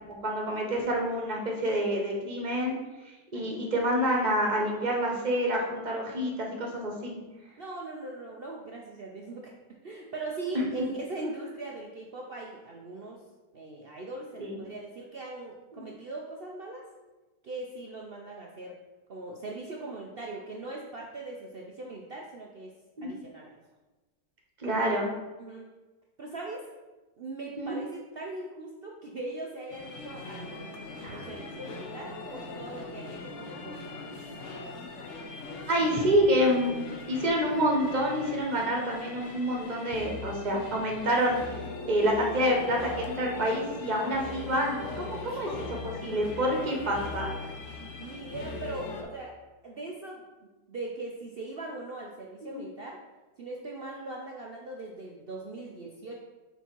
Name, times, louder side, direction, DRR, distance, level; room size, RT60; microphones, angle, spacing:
voice 1, 0.1-2.8 3.0-7.2 14.4-14.6 23.0-23.1 24.6-25.1 27.6-27.8 31.0-31.2 35.7-41.4 41.8-47.3 52.4-52.6, equal, 30° right, 0 dB, 1.0 m, -28 dB
voice 2, 3.3-3.7 7.6-9.5 9.8-13.2 13.5-16.8 17.4-18.8 19.1-22.7 23.0-23.6 24.6-24.8 25.4-25.7 26.2-26.7 27.2-30.7 31.1-34.2 47.8-49.3 49.6-50.2 50.7-53.0 53.4-56.2, right 2 dB, 65° right, -1 dB, 0.5 m, -40 dB
sound 1, 29.7-49.0, left 3 dB, 55° left, 0.9 m, -40 dB
6.2 x 4.0 x 4.5 m, 1.2 s
omnidirectional pair, 1.8 m